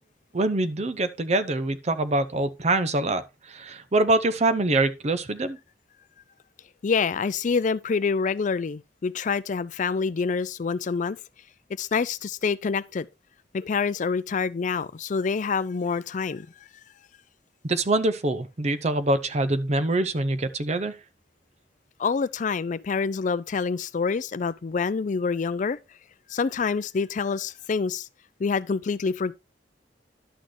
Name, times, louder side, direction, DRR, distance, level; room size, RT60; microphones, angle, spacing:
voice 1, 0.3-5.6 17.6-20.9, right 2 dB, 40° right, 0.7 m, -24 dB
voice 2, 6.8-11.2 11.8-13.1 13.5-16.5 22.0-25.8 26.3-28.1 28.4-29.3, left 5 dB, 45° left, 0.4 m, -26 dB
11.5 x 6.3 x 3.1 m
head